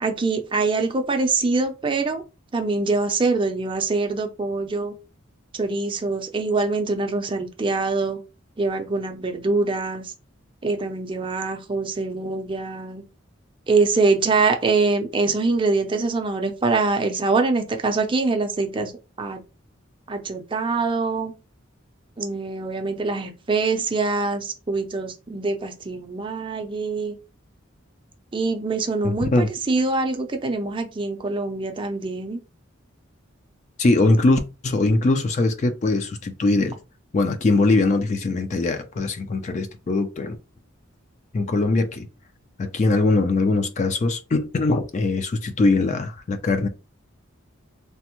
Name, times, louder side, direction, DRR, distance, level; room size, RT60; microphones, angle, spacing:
voice 1, 0.0-2.2 2.5-4.9 5.5-8.2 8.6-10.1 10.6-13.0 13.7-18.9 19.2-19.4 20.1-21.3 22.2-27.2 28.3-32.4, right 3 dB, 25° right, 0.4 m, -24 dB
voice 2, 29.0-29.5 33.8-36.8 37.1-40.4 41.3-42.1 42.6-46.7, left 2 dB, 35° left, 0.3 m, -21 dB
3.3 x 2.0 x 2.9 m
head